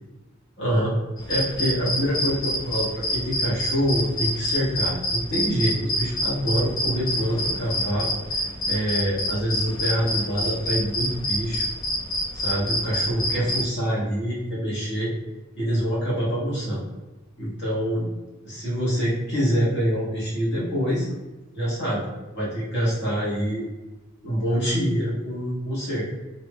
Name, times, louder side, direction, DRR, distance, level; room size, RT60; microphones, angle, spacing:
voice 1, 0.6-0.9 1.3-11.7 12.3-15.1 15.5-16.8 17.4-18.1 18.4-21.1 21.5-22.0 22.3-23.6 24.2-26.1, equal, 55° left, -7 dB, 1.1 m, -25 dB
sound 1, 1.2-13.7, left 1 dB, 20° left, 0.3 m, -27 dB
2.5 x 2.0 x 3.5 m, 1.1 s
head